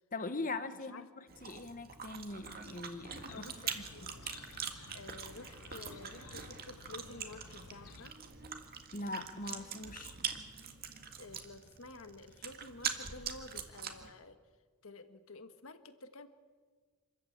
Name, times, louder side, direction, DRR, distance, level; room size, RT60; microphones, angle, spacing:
voice 1, 0.1-3.5 3.7-3.8 8.9-10.2, left 2 dB, 40° left, 11 dB, 1.3 m, -41 dB
voice 2, 0.7-1.1 3.3-4.2 4.9-8.1 11.2-14.4 14.8-16.3, left 3 dB, 65° left, 9 dB, 1.5 m, -51 dB
Chewing mastication, 1.3-14.1, right 7 dB, 45° right, 1.8 m, -43 dB
Chirp tweet, 3.1-8.1, left 5 dB, 80° left, 0.8 m, -54 dB
26.5 x 14.0 x 8.6 m, 1.5 s
head